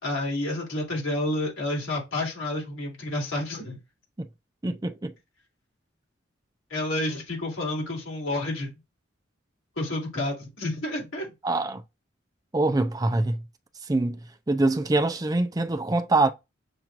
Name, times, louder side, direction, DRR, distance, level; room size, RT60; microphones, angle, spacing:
voice 1, 0.0-3.8 6.7-8.7 9.8-11.3, left 1 dB, 85° left, 3.1 m, -30 dB
voice 2, 4.6-5.1 11.4-11.8 12.5-13.4 13.9-14.2 14.5-16.3, right 2 dB, 20° right, 0.4 m, -24 dB
6.9 x 3.0 x 2.4 m
head